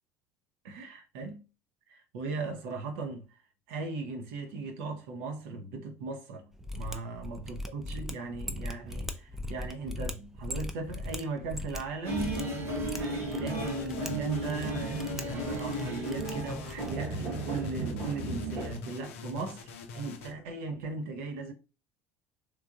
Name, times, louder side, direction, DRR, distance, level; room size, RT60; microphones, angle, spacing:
voice 1, 0.6-1.4 1.9-3.3 3.7-6.5 6.7-12.4 12.9-21.5, right 3 dB, 65° right, 0.7 m, -38 dB
Mechanisms, 6.6-17.1, left 1 dB, 5° right, 0.5 m, -40 dB
sound 1, 12.0-18.7, right 2 dB, 85° right, 1.6 m, -34 dB
sound 2, 13.5-20.3, left 6 dB, 70° left, 0.5 m, -43 dB
3.4 x 3.2 x 2.4 m
figure-of-eight pair, 60°, 7 cm